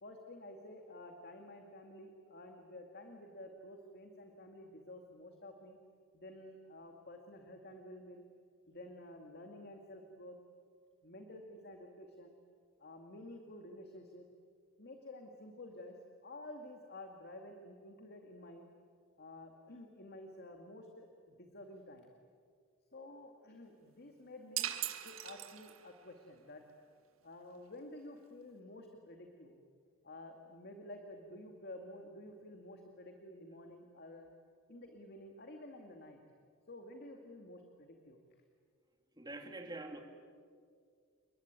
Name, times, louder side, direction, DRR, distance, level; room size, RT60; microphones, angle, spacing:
voice 1, 0.0-5.8 6.1-8.2 8.7-10.4 11.0-12.4 12.8-14.3 14.8-18.6 19.2-22.1 22.9-24.8 25.0-26.6 27.2-29.6 30.0-34.3 34.7-36.2 36.7-38.2, left 1 dB, 50° left, 4 dB, 2.2 m, -51 dB
sound 1, 24.6-26.0, right 12 dB, 70° right, 1.6 m, -39 dB
voice 2, 39.2-40.0, right 2 dB, 20° right, 4 dB, 2.8 m, -45 dB
29.5 x 22.5 x 9.1 m, 2.1 s
head